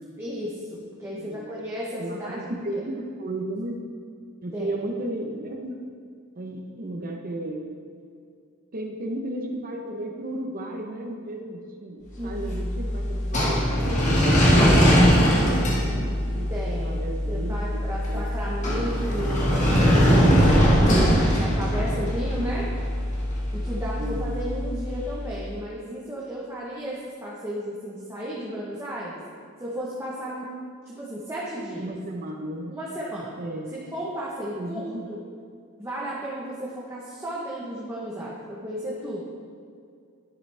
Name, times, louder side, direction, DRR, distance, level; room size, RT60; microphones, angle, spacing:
voice 1, 0.2-2.8 4.5-4.7 12.1-12.4 16.5-17.0 17.3-22.7 23.5-29.2 29.6-30.5 30.8-31.9 32.7-33.4 33.7-35.2 35.8-39.2, equal, 15° right, -6 dB, 1.2 m, -34 dB
voice 2, 1.1-1.6 2.0-3.8 4.4-5.8 6.4-7.7 8.7-17.8 18.1-18.5 24.0-24.4 31.8-32.8 33.3-33.7 34.6-35.1, right 1 dB, 45° right, 2 dB, 1.0 m, -34 dB
sound 1, 12.2-25.3, equal, 35° left, 1.7 m, -22 dB
11.0 x 7.8 x 3.5 m, 2.3 s
head